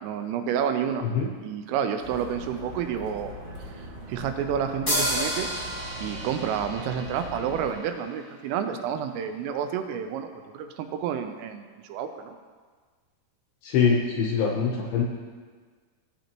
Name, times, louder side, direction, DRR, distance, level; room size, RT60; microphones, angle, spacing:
voice 1, 0.0-1.0 1.4-3.3 4.1-5.5 6.0-10.3 10.5-12.3, right 8 dB, 85° right, 7 dB, 3.2 m, -29 dB
sound 1, 2.0-7.7, right 1 dB, 65° right, 3.7 m, -41 dB
sound 2, 4.9-8.4, equal, 20° left, 1.3 m, -31 dB
voice 2, 13.6-15.0, left 6 dB, 75° left, -1 dB, 2.7 m, -24 dB
16.0 x 8.0 x 2.9 m, 1.5 s
omnidirectional pair, 5.9 m